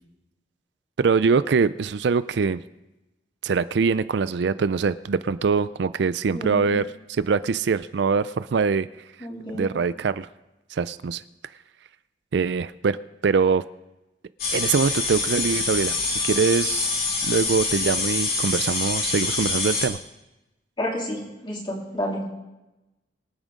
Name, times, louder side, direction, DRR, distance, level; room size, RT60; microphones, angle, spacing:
voice 1, 1.0-2.6 3.4-8.9 9.5-10.3 10.7-11.2 12.3-13.0 13.2-13.6 14.5-16.9 17.2-20.0, right 5 dB, 65° right, 15 dB, 0.4 m, -23 dB
voice 2, 6.3-6.8 9.2-9.7 20.8-22.2, left 1 dB, 25° left, -3 dB, 3.4 m, -30 dB
sound 1, 14.4-19.9, left 3 dB, 50° left, 3.1 m, -25 dB
24.0 x 9.1 x 3.7 m, 0.99 s
head